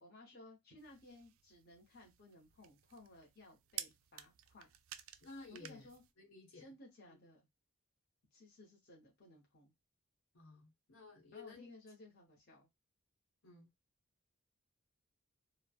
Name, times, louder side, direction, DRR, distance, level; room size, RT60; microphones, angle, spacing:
voice 1, 0.0-4.7 5.5-6.0 6.5-7.5 8.3-9.7 11.3-12.7, left 2 dB, 45° left, 0.8 m, -58 dB
sound 1, 0.8-6.1, right 12 dB, 80° right, 0.3 m, -52 dB
voice 2, 5.2-5.9 6.2-6.7 7.1-7.2 10.3-11.7 13.4-13.7, left 3 dB, 80° left, 1.0 m, -54 dB
3.1 x 2.0 x 2.3 m
head